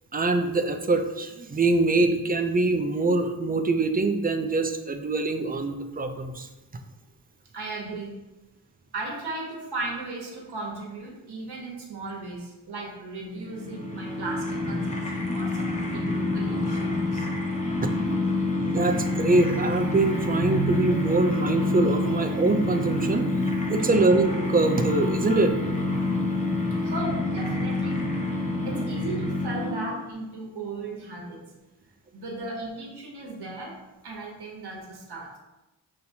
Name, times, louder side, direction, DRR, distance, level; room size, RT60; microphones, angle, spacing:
voice 1, 0.1-6.5 17.8-17.9 18.6-25.6, right 2 dB, 25° right, 7 dB, 0.4 m, -24 dB
voice 2, 7.5-8.1 8.9-17.3 26.8-28.0 28.7-31.5 32.1-33.7 34.0-35.3, right 2 dB, 70° right, -2 dB, 1.1 m, -36 dB
sound 1, 13.4-30.1, left 2 dB, 20° left, 0.7 m, -27 dB
5.6 x 2.8 x 2.7 m, 1.0 s
cardioid pair, 65°, 40 cm